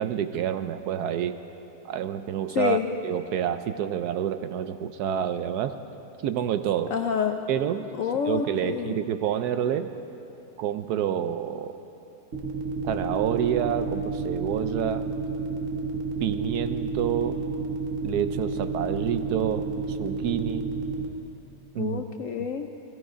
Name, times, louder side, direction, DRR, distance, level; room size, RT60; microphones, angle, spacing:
voice 1, 0.0-1.3 1.8-5.8 6.2-6.9 7.5-7.9 8.3-9.9 10.6-11.7 12.8-15.1 16.2-17.4 18.0-20.7 21.7-22.0, right 9 dB, 70° right, 10 dB, 1.0 m, -28 dB
voice 2, 2.6-2.9 6.9-7.4 8.0-9.0 21.8-22.7, left 7 dB, 65° left, 5 dB, 0.8 m, -27 dB
sound 1, 12.3-21.1, right 4 dB, 50° right, 1.5 m, -31 dB
18.5 x 15.0 x 5.0 m, 2.9 s
omnidirectional pair, 1.9 m